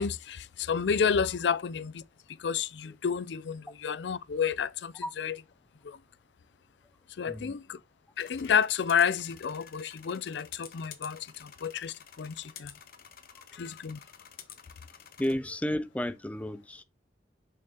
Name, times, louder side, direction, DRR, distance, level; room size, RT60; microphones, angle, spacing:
voice 1, 0.0-2.0 2.4-5.4 5.8-6.0 7.2-7.8 8.2-12.7 13.5-14.0, left 7 dB, 85° left, 0.4 m, -30 dB
voice 2, 7.3-7.6 15.2-16.8, left 1 dB, 10° left, 0.4 m, -32 dB
sound 1, 8.2-15.3, left 9 dB, 55° left, 0.9 m, -50 dB
6.5 x 5.7 x 2.9 m
head